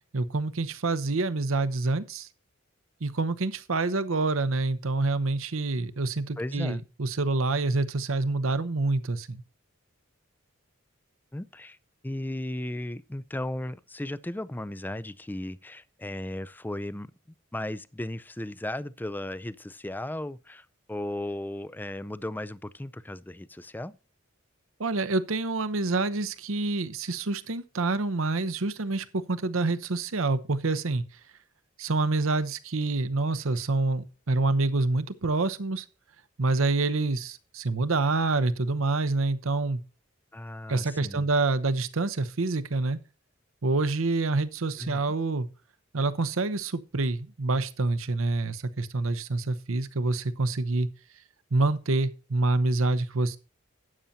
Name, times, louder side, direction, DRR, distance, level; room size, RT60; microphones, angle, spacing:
voice 1, 0.1-2.3 3.0-9.4 24.8-31.0 31.8-35.8 36.4-39.8 40.7-43.0 43.6-45.5 45.9-50.9 51.5-53.4, right 3 dB, 70° right, 0.9 m, -27 dB
voice 2, 6.4-6.8 11.3-11.8 12.0-17.1 17.5-23.9 40.3-41.3 44.8-45.0, left 1 dB, 10° left, 0.4 m, -35 dB
12.5 x 8.9 x 2.8 m
head